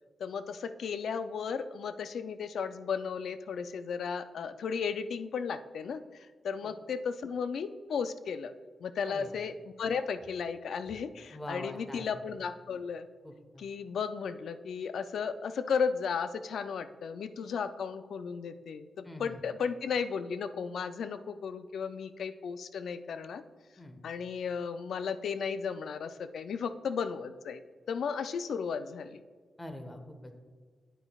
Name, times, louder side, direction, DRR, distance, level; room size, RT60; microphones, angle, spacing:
voice 1, 0.2-8.5 8.8-9.5 9.8-13.1 13.6-23.4 24.0-27.6 27.9-29.2, left 6 dB, 80° left, 11 dB, 0.4 m, -35 dB
voice 2, 9.1-9.4 11.3-12.1 13.2-13.7 19.0-19.4 23.8-24.0 29.6-30.4, left 1 dB, 20° left, 6 dB, 1.1 m, -44 dB
9.6 x 9.1 x 2.3 m, 1.5 s
cardioid pair, 75°, 0 cm